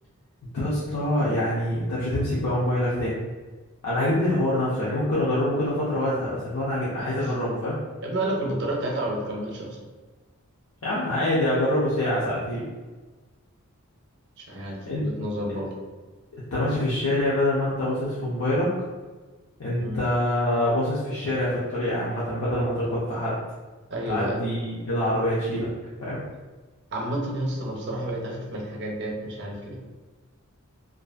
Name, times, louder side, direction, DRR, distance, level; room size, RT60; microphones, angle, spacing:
voice 1, 0.5-3.2 3.8-7.8 10.8-12.7 14.9-15.1 16.5-18.7 19.6-23.4 24.0-25.7 26.0-26.2, left 1 dB, 70° left, -8 dB, 0.6 m, -25 dB
voice 2, 7.0-7.5 8.0-9.8 14.4-15.7 19.8-20.0 23.9-24.4 26.9-29.8, right 1 dB, 50° right, -1 dB, 0.5 m, -30 dB
2.5 x 2.4 x 2.4 m, 1.3 s
head